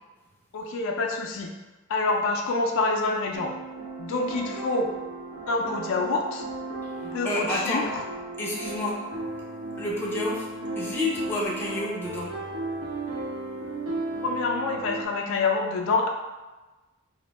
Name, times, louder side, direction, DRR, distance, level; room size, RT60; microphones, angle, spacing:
voice 1, 0.5-1.5 1.9-3.5 4.0-4.9 5.5-6.4 7.0-7.8 14.2-16.1, left 3 dB, 70° left, 2 dB, 0.3 m, -26 dB
sound 1, 3.3-15.1, right 2 dB, 75° right, 0.8 m, -35 dB
voice 2, 7.2-7.8 8.4-9.0 9.8-10.5 10.8-12.3, left 1 dB, 10° left, -5 dB, 0.5 m, -29 dB
2.5 x 2.1 x 3.9 m, 1.1 s
head